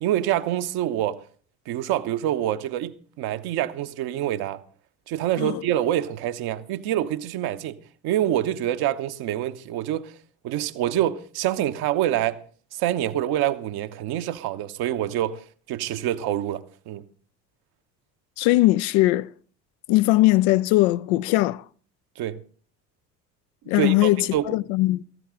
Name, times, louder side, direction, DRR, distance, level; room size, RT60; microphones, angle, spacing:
voice 1, 0.0-1.2 1.7-4.6 5.1-7.8 8.0-10.1 10.4-12.4 12.7-15.4 15.7-17.0 22.2-22.4 23.7-24.5, right 12 dB, 50° right, 1.0 m, -26 dB
voice 2, 18.4-19.3 19.9-21.6 23.7-25.0, left 18 dB, 50° left, 0.6 m, -20 dB
17.0 x 14.5 x 3.8 m
figure-of-eight pair, 60°, 49 cm